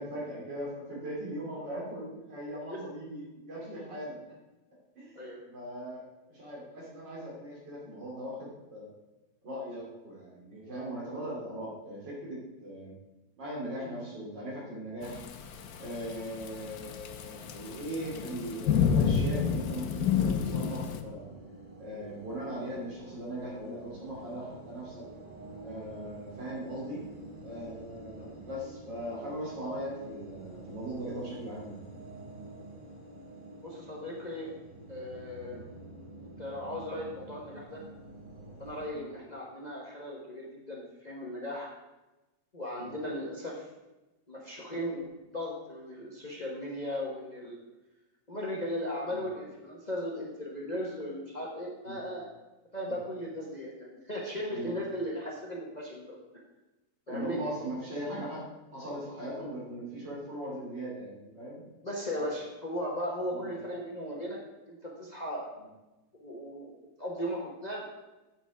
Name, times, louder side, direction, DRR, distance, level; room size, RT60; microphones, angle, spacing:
voice 1, 0.0-4.2 4.9-5.2 5.5-8.9 9.4-12.9 13.4-15.2 15.8-21.3 21.8-25.1 25.6-27.0 27.4-31.8 35.5-35.6 38.9-39.1 42.8-42.9 49.1-49.2 51.8-52.0 54.5-54.7 57.1-61.6 63.3-63.5, right 1 dB, 85° right, -5 dB, 3.2 m, -39 dB
Thunderstorm / Rain, 15.0-21.0, left 7 dB, 65° left, 1.2 m, -29 dB
sound 1, 19.1-38.9, right 2 dB, 30° right, 2.5 m, -48 dB
voice 2, 33.5-34.5 34.9-35.6 36.2-37.8 38.6-41.7 42.5-43.7 44.3-47.6 48.3-52.3 52.7-56.2 57.1-57.4 61.8-64.4 64.7-65.5 66.2-67.9, equal, 25° left, -2 dB, 1.2 m, -37 dB
8.4 x 6.9 x 4.8 m, 1.0 s
omnidirectional pair, 1.9 m